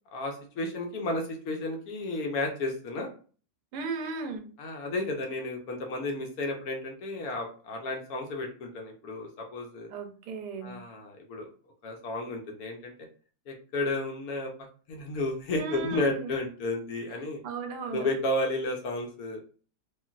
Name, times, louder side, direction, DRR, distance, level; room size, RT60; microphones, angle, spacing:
voice 1, 0.1-3.1 4.6-9.9 10.6-11.5 11.8-12.9 13.5-14.5 14.9-17.4 17.9-19.4, left 2 dB, 65° left, 2 dB, 1.1 m, -32 dB
voice 2, 3.7-4.5 9.9-10.8 15.5-16.3 17.4-18.1, right 3 dB, 90° right, 5 dB, 1.2 m, -35 dB
3.1 x 2.5 x 2.4 m, 0.39 s
omnidirectional pair, 1.8 m